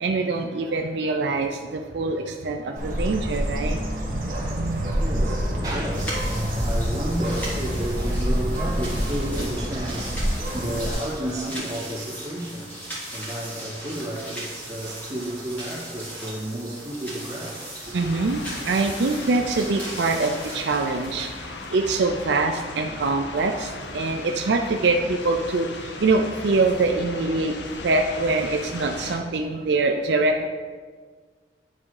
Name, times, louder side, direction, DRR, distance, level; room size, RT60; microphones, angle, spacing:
voice 1, 0.0-3.8 4.2-5.0 17.9-21.3 21.7-25.7 26.0-27.5 27.8-30.5, right 3 dB, 70° right, 4 dB, 0.4 m, -24 dB
Bird, 2.8-10.9, equal, 50° right, 1.2 m, -27 dB
voice 2, 4.9-18.2, right 1 dB, 20° right, -7 dB, 1.9 m, -32 dB
sound 1, 5.9-21.9, right 1 dB, 10° left, 1.6 m, -38 dB
sound 2, 17.9-29.2, left 3 dB, 75° left, 0.7 m, -37 dB
9.5 x 3.6 x 4.8 m, 1.5 s
head